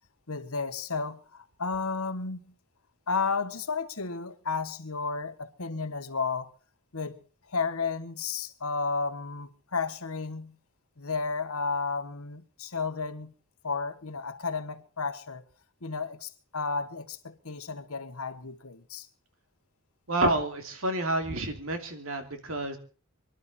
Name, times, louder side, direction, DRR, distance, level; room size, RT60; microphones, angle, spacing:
voice 1, 0.3-2.5 3.1-6.5 6.9-10.6 11.0-13.3 13.6-15.4 15.8-19.1, left 4 dB, 75° left, 1.4 m, -33 dB
voice 2, 20.1-22.8, right 1 dB, 65° right, 2.7 m, -29 dB
25.5 x 12.0 x 4.3 m
head